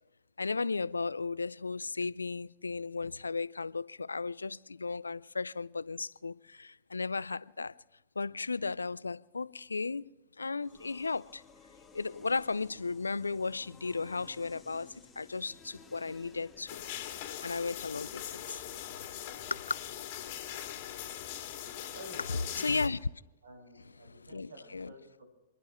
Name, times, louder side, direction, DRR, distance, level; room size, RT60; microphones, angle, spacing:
voice 1, 0.4-7.7 8.2-10.1 10.4-11.4 11.9-16.8 17.4-18.6 19.5-19.8 22.3-23.0 24.0-24.9, left 4 dB, 85° left, 0.4 m, -35 dB
sound 1, 10.6-17.5, left 5 dB, 15° left, 1.7 m, -56 dB
sound 2, 16.7-22.9, left 11 dB, 50° left, 2.2 m, -41 dB
voice 2, 21.9-22.7 23.4-25.2, equal, 75° right, 5.5 m, -50 dB
29.0 x 11.0 x 3.1 m
figure-of-eight pair, 105°, 0 cm